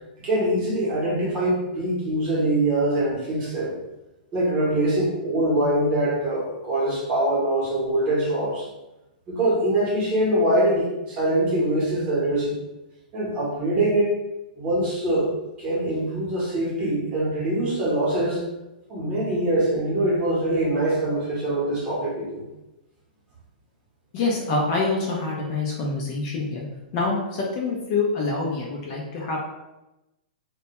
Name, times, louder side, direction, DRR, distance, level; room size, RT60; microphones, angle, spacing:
voice 1, 0.2-3.7 4.3-8.7 9.3-12.6 13.1-14.1 14.6-15.3 15.6-18.4 18.9-22.4, right 1 dB, 25° right, -6 dB, 0.8 m, -23 dB
voice 2, 24.1-26.6 26.9-29.4, left 3 dB, 35° left, -2 dB, 0.4 m, -26 dB
2.1 x 2.1 x 2.9 m, 0.98 s
hypercardioid pair, 160°, 5 cm